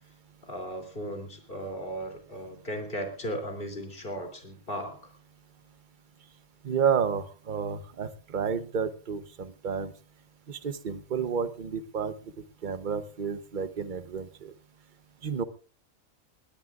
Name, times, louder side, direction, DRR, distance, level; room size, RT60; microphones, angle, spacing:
voice 1, 0.4-5.1, equal, 40° left, 4 dB, 3.4 m, -36 dB
voice 2, 6.6-9.9 10.5-12.1 12.6-14.5 15.2-15.4, right 6 dB, 40° right, 11 dB, 1.1 m, -30 dB
21.0 x 19.0 x 2.5 m, 0.39 s
omnidirectional pair, 1.3 m